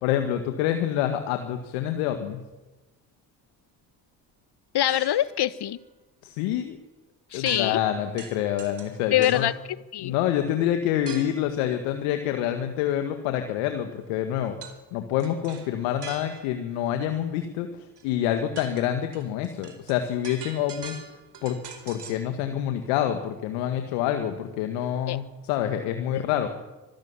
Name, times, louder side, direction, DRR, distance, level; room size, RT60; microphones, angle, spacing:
voice 1, 0.0-2.4 6.2-6.8 7.3-9.5 10.0-14.6 14.9-17.7 18.0-21.0 21.4-21.6 21.9-26.5, left 11 dB, 80° left, 7 dB, 2.0 m, -27 dB
voice 2, 4.7-5.8 7.3-7.8 9.1-9.5 9.9-10.1 25.1-25.2 26.1-26.2, left 12 dB, 50° left, 16 dB, 1.4 m, -24 dB
sound 1, 4.9-5.4 7.5-7.9 8.2-9.6 11.1-11.5 14.6-14.8 15.2-16.6 18.0-18.1 18.4-22.3, right 6 dB, 55° right, 4.9 m, -43 dB
25.0 x 15.0 x 9.8 m, 1.1 s
hypercardioid pair, 45°, 50 cm